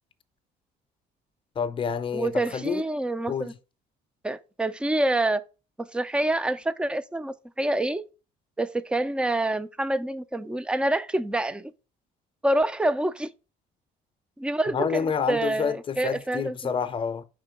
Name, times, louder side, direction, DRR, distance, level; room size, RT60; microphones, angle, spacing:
voice 1, 1.6-2.8 3.3-3.5 14.7-17.3, left 6 dB, 30° left, 0.7 m, -28 dB
voice 2, 2.1-3.5 4.2-5.4 5.9-8.0 8.6-11.7 12.4-13.3 14.4-16.7, right 1 dB, 5° right, 0.4 m, -27 dB
5.1 x 3.8 x 5.0 m
cardioid pair, 110°, 17 cm